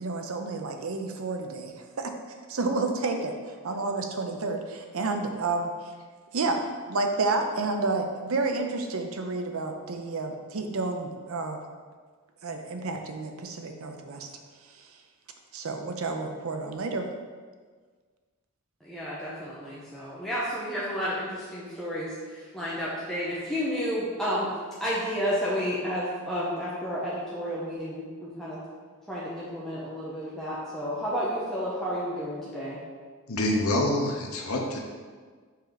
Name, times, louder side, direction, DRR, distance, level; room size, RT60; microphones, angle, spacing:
voice 1, 0.0-2.1 2.5-5.7 6.3-11.6 12.4-14.3 15.5-17.1, right 3 dB, 65° right, 5 dB, 0.6 m, -30 dB
voice 2, 18.8-24.5 24.8-28.6 29.1-32.8, equal, ahead, -8 dB, 0.8 m, -31 dB
voice 3, 33.3-34.8, left 1 dB, 75° left, 1 dB, 0.9 m, -26 dB
5.6 x 4.5 x 4.0 m, 1.5 s
head